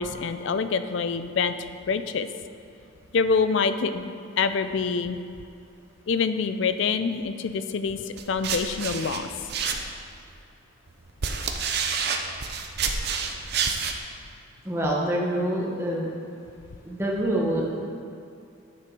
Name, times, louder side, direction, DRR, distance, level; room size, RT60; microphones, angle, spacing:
voice 1, 0.0-1.5 1.9-2.3 3.1-5.2 6.1-9.3, left 5 dB, 60° left, 10 dB, 0.4 m, -26 dB
sound 1, 8.2-10.2 10.9-14.0, right 5 dB, 50° right, 0.6 m, -28 dB
voice 2, 14.6-16.1 16.8-17.8, right 1 dB, 10° right, -3 dB, 1.1 m, -26 dB
9.4 x 6.0 x 4.7 m, 2.6 s
head